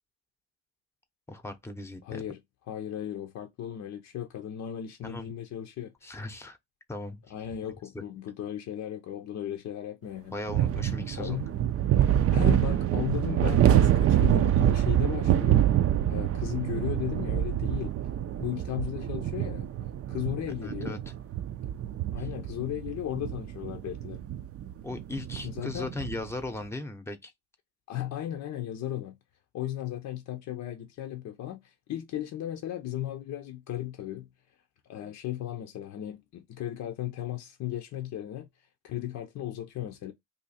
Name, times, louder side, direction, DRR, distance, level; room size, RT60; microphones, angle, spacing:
voice 1, 1.3-2.2 5.0-5.3 6.0-6.6 6.9-7.2 7.9-8.0 10.3-11.6 20.6-21.1 24.8-27.3, left 2 dB, 10° left, 0.7 m, -38 dB
voice 2, 2.0-2.4 2.7-6.2 7.3-10.4 11.2-11.5 12.3-15.7 16.1-17.9 18.4-19.7 20.1-21.0 22.1-24.2 25.4-25.9 27.9-29.2 29.5-34.3 34.9-38.5 38.8-40.1, left 12 dB, 65° left, 0.6 m, -36 dB
sound 1, 10.5-26.3, right 11 dB, 50° right, 0.4 m, -26 dB
2.7 x 2.5 x 4.1 m
cardioid pair, 90°, 30 cm